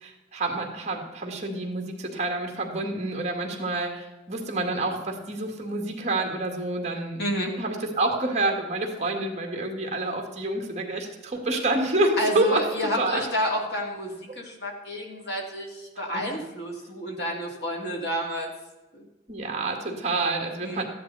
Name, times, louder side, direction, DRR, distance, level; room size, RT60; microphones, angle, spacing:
voice 1, 0.0-7.2 7.6-12.6 13.0-13.3 16.0-16.3 19.3-20.8, right 2 dB, 35° right, 2 dB, 1.9 m, -28 dB
voice 2, 7.2-7.5 12.2-18.5 18.9-19.1 20.6-20.8, equal, 60° left, -1 dB, 3.0 m, -30 dB
14.5 x 10.5 x 4.1 m, 1.1 s
head